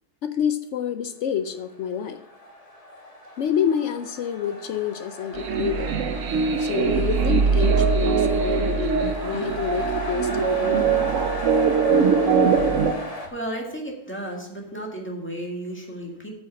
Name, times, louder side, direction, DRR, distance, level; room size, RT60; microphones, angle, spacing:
voice 1, 0.2-2.2 3.4-5.9 6.6-11.1, left 8 dB, 75° left, 8 dB, 0.6 m, -28 dB
sound 1, 1.8-13.3, left 1 dB, 25° left, 1.4 m, -36 dB
sound 2, 5.3-12.9, right 6 dB, 60° right, 0.9 m, -22 dB
voice 2, 13.2-16.3, right 1 dB, 5° left, -1 dB, 1.8 m, -33 dB
9.0 x 5.3 x 7.0 m, 0.85 s
omnidirectional pair, 1.8 m